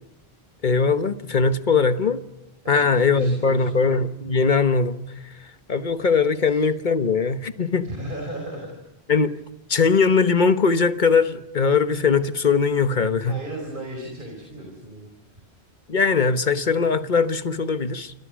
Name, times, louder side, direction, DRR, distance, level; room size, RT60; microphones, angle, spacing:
voice 1, 0.6-2.2 2.7-5.3 5.7-7.9 9.1-9.4 9.7-13.4 15.9-18.1, left 5 dB, 45° left, 1.3 m, -20 dB
voice 2, 2.6-3.9 6.4-6.6 7.8-8.8 13.2-15.1, right 1 dB, 50° right, 5.2 m, -36 dB
30.0 x 26.0 x 6.3 m
omnidirectional pair, 1.1 m